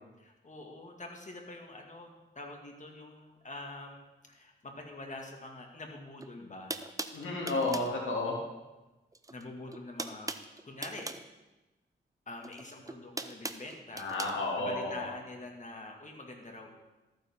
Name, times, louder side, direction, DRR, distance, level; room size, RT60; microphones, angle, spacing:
voice 1, 0.2-6.9 7.5-7.9 9.3-10.3 10.6-11.1 12.3-14.1 14.6-16.7, left 2 dB, 40° left, 2 dB, 2.1 m, -45 dB
sound 1, 6.2-6.3 6.7-7.9 9.1-9.4 9.7-11.3 12.4-14.3, right 2 dB, 15° right, 0.7 m, -40 dB
voice 2, 7.1-8.4 14.0-15.1, left 2 dB, 90° left, -2 dB, 2.5 m, -32 dB
14.0 x 9.4 x 3.7 m, 1.1 s
cardioid pair, 70°, 20 cm